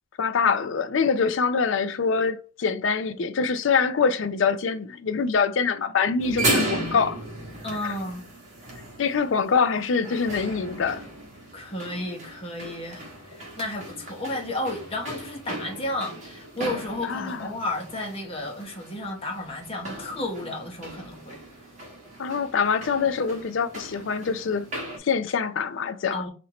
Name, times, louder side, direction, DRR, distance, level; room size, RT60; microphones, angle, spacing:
voice 1, 0.2-7.2 7.8-7.9 9.0-11.0 17.0-17.5 22.2-24.7 25.0-26.2, left 5 dB, 70° left, 0.4 m, -24 dB
sound 1, 6.2-25.0, right 2 dB, 35° right, 1.3 m, -35 dB
voice 2, 7.6-8.2 11.5-21.4 26.1-26.3, left 1 dB, 30° left, 1.0 m, -32 dB
4.3 x 2.6 x 2.9 m
head